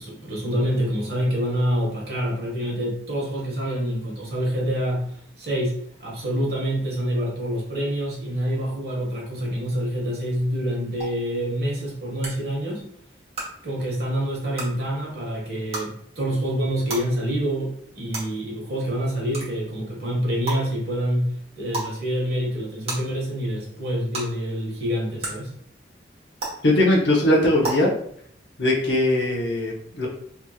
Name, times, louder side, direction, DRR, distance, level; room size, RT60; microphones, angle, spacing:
voice 1, 0.0-5.1 5.4-12.9 13.6-21.3 21.6-25.5, equal, 65° right, -3 dB, 1.2 m, -26 dB
sound 1, 11.0-11.1 12.2-12.3 13.3-13.4 14.5-14.6 15.7-15.8 16.9-17.0 18.1-18.2 19.3-19.5 20.5-20.6 21.7-21.9 22.9-23.0 24.1-24.2 25.2-25.3 26.4-26.5 27.6-27.7, right 2 dB, 35° right, 1.2 m, -29 dB
voice 2, 26.6-27.9 28.6-30.1, left 1 dB, 80° left, -3 dB, 0.9 m, -20 dB
3.5 x 2.9 x 2.3 m, 0.66 s
head